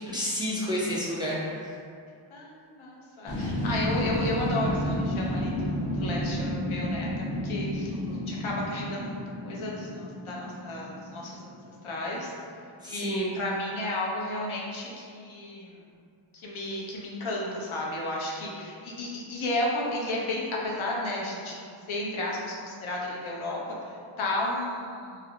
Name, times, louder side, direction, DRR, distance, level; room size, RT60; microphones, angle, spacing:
voice 1, 0.1-1.5 7.9-8.2 12.8-13.3, equal, 10° right, -8 dB, 0.4 m, -30 dB
voice 2, 2.3-7.9 8.3-11.5 11.8-12.3 12.8-15.8 16.3-21.5 21.9-25.2, left 1 dB, 75° left, -3 dB, 0.6 m, -33 dB
sound 1, 3.3-11.8 12.1-12.2, equal, 40° left, 0.8 m, -31 dB
2.4 x 2.0 x 2.7 m, 2.3 s
wide cardioid pair, 80°, 48 cm